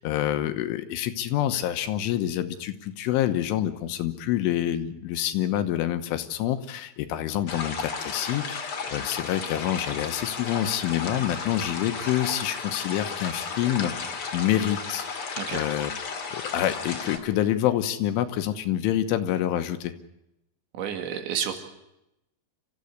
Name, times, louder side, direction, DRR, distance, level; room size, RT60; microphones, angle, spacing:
voice 1, 0.0-15.1 15.5-15.9 16.3-19.9, left 12 dB, 80° left, 9 dB, 3.5 m, -27 dB
sound 1, 7.5-17.2, left 5 dB, 45° left, 2.0 m, -34 dB
voice 2, 20.7-21.6, right 8 dB, 65° right, 6 dB, 4.2 m, -30 dB
29.0 x 14.5 x 8.1 m, 0.87 s
omnidirectional pair, 5.9 m